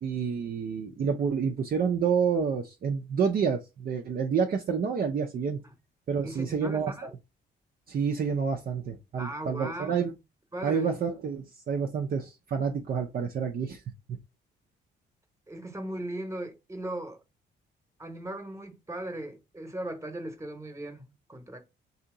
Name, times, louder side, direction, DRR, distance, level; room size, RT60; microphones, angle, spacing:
voice 1, 0.0-5.6 6.1-7.1 7.9-10.1 10.6-13.8, right 6 dB, 50° right, 0.5 m, -29 dB
voice 2, 6.2-7.1 9.2-10.1 10.5-11.0 15.5-17.2 18.0-21.6, right 1 dB, 15° right, 1.0 m, -38 dB
2.8 x 2.7 x 3.7 m
cardioid pair, 90°, 20 cm